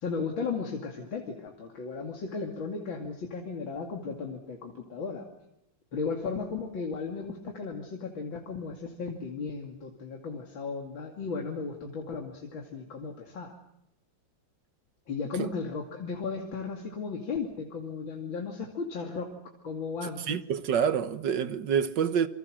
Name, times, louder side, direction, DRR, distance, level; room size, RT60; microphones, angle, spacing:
voice 1, 0.0-5.2 5.9-13.5 15.1-19.3 19.6-20.4, left 4 dB, 80° left, 3.2 m, -35 dB
voice 2, 20.3-22.3, right 7 dB, 70° right, 1.8 m, -27 dB
28.0 x 25.0 x 6.4 m
omnidirectional pair, 2.1 m